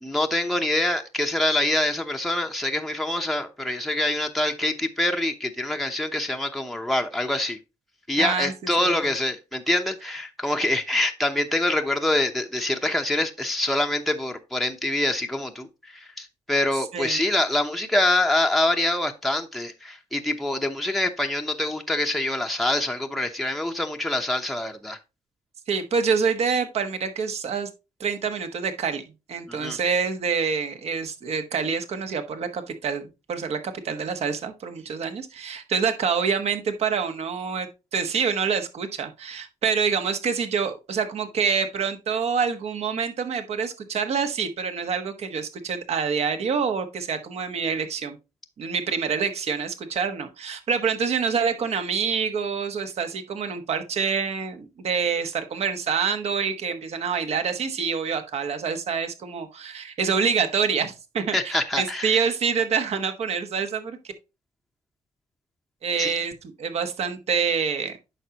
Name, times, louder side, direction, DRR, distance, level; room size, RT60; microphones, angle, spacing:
voice 1, 0.0-7.6 8.1-25.0 29.5-29.8 61.3-62.2 66.0-66.1, left 1 dB, ahead, 0.8 m, -25 dB
voice 2, 8.2-8.5 8.8-8.9 16.9-17.2 25.7-27.7 28.0-29.0 29.3-48.2 48.6-64.0 65.8-68.0, right 6 dB, 60° right, 1.3 m, -26 dB
8.9 x 5.9 x 2.9 m
cardioid pair, 100°, 12 cm